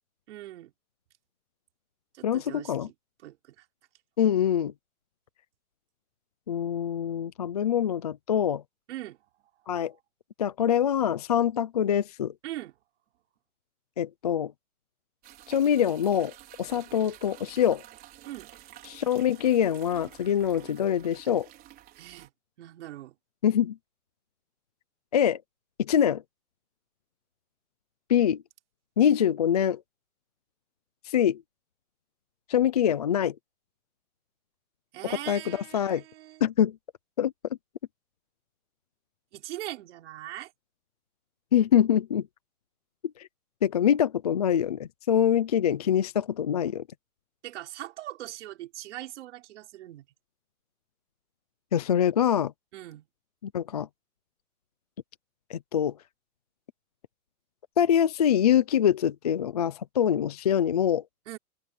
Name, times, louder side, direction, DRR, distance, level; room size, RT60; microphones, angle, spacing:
voice 1, 0.3-0.7 2.1-2.9 3.2-3.6 8.9-9.2 12.4-12.7 18.2-18.5 22.0-22.3 22.6-23.1 34.9-36.4 39.3-40.5 47.4-50.1 52.7-53.1 61.3-61.4, right 14 dB, 50° right, 4.9 m, -41 dB
voice 2, 2.2-2.9 4.2-4.7 6.5-8.6 9.7-9.9 10.4-12.3 14.0-14.5 15.5-16.3 16.6-17.8 18.8-21.5 23.4-23.8 25.1-25.4 25.8-26.2 28.1-28.4 29.0-29.8 31.0-31.4 32.5-33.3 35.3-36.0 36.4-36.8 37.2-37.3 41.5-42.2 43.2-43.3 43.6-46.8 51.7-52.5 53.4-53.9 55.5-55.9 57.8-61.0, left 9 dB, 25° left, 0.5 m, -24 dB
sound 1, 15.2-22.3, right 13 dB, 20° right, 4.9 m, -51 dB
open air
hypercardioid pair, 165°, 45 cm